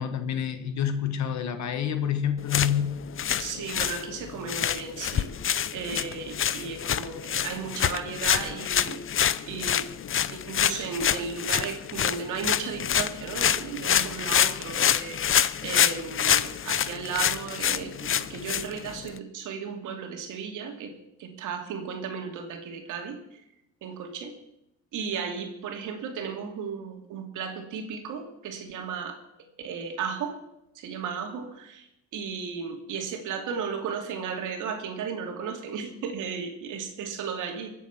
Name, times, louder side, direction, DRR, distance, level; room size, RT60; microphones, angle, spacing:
voice 1, 0.0-3.0, left 9 dB, 65° left, 1.5 m, -28 dB
sound 1, 2.4-19.2, left 9 dB, 45° left, 0.7 m, -27 dB
voice 2, 3.4-10.0 10.3-20.9 21.2-23.2 23.8-24.3 24.9-29.2 29.6-30.4 30.7-37.7, right 6 dB, 90° right, 2.6 m, -35 dB
23.0 x 8.3 x 6.0 m
cardioid pair, 90°, 30 cm